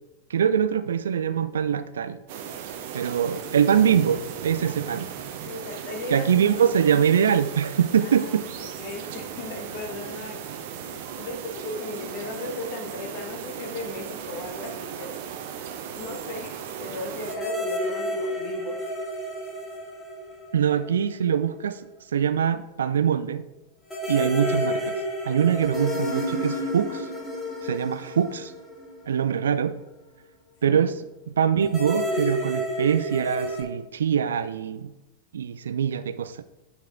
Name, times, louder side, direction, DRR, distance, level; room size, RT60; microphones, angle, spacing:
voice 1, 0.3-2.2 2.9-5.1 6.1-8.5 20.5-21.8 22.1-23.5 24.1-25.0 25.2-27.1 27.6-28.5 29.1-29.8 30.6-31.0 31.4-34.9 35.3-36.4, right 8 dB, 65° right, 0.4 m, -23 dB
sound 1, 2.3-17.4, right 8 dB, 50° right, 0.8 m, -37 dB
voice 2, 4.7-5.0 5.5-6.6 8.0-10.4 10.8-15.2 15.9-18.8 30.6-30.9, left 2 dB, 45° left, 1.4 m, -37 dB
sound 2, 17.3-21.0 21.3-21.4 23.9-29.3 31.6-33.6, equal, 15° left, 2.1 m, -30 dB
9.3 x 4.7 x 3.6 m
figure-of-eight pair, 90°, 0 cm